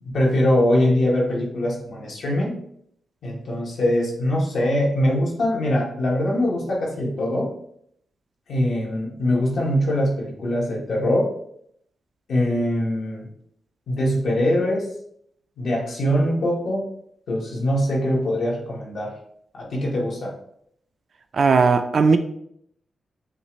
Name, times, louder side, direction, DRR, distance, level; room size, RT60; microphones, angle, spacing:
voice 1, 0.0-2.6 3.2-7.5 8.5-11.3 12.3-13.3 13.9-14.9 15.6-16.8 17.3-19.1 19.5-20.3, left 1 dB, 65° left, -2 dB, 1.4 m, -22 dB
voice 2, 21.3-22.2, right 4 dB, 45° right, 8 dB, 0.4 m, -17 dB
6.7 x 2.5 x 3.1 m, 0.70 s
wide cardioid pair, 155°, 0 cm